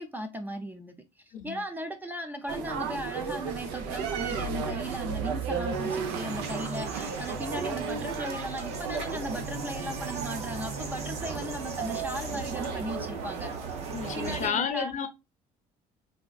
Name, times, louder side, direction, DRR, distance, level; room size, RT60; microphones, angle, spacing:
voice 1, 0.0-13.5 14.1-14.9, right 1 dB, 10° right, 0.5 m, -37 dB
sound 1, 2.5-14.5, right 5 dB, 80° right, 0.6 m, -34 dB
sound 2, 5.7-14.4, right 4 dB, 40° right, 0.9 m, -43 dB
voice 2, 13.9-15.1, left 7 dB, 50° left, 0.7 m, -31 dB
3.5 x 2.4 x 2.3 m
cardioid pair, 95°, 17 cm